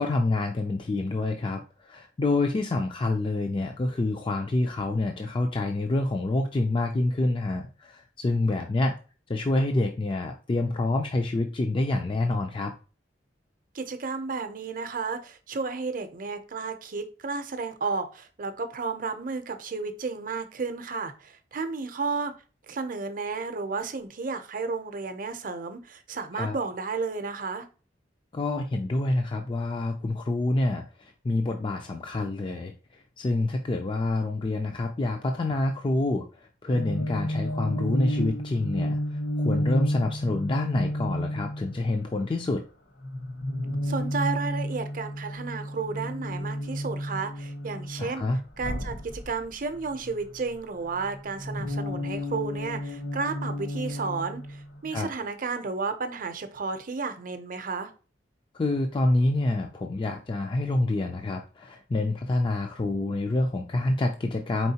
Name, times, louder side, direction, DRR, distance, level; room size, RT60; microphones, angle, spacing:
voice 1, 0.0-8.9 9.3-12.7 26.3-26.6 28.3-42.6 48.0-48.4 54.9-55.1 58.5-64.7, left 2 dB, 30° left, 0.4 m, -27 dB
voice 2, 13.7-22.3 22.7-27.6 43.8-48.3 48.6-57.9, right 4 dB, 50° right, 0.6 m, -32 dB
sound 1, 36.7-41.9 43.0-48.1 48.5-50.6 50.9-55.0, equal, 70° left, 1.2 m, -31 dB
4.6 x 3.5 x 2.8 m
head